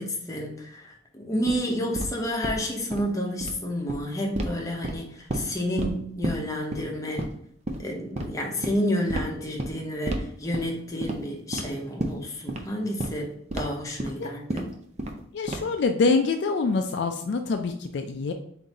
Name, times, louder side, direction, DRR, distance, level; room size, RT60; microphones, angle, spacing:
voice 1, 0.0-7.3 7.8-13.3 13.5-14.7, equal, 15° left, -1 dB, 0.7 m, -30 dB
sound 1, 1.5-1.6 2.0-2.1 2.4-2.6 2.9-3.0 3.3-3.5 3.9-4.0 4.4-4.5 4.8-5.5 5.8-5.9 6.2-6.4 6.7-6.8 7.2-7.4 7.7-7.8 8.2-8.3 8.6-8.8 9.1-9.2 9.6-9.7 10.1-10.2 10.5-10.7 11.0-11.2 11.5-11.6 12.0-12.1 12.5-12.6 13.0-13.1 13.5-13.6 14.0-14.1 14.5-14.6 15.0-15.2 15.5-15.8, right 1 dB, 35° right, 0.4 m, -30 dB
voice 2, 15.3-18.3, left 4 dB, 60° left, 5 dB, 0.3 m, -25 dB
3.8 x 2.6 x 4.0 m, 0.70 s
head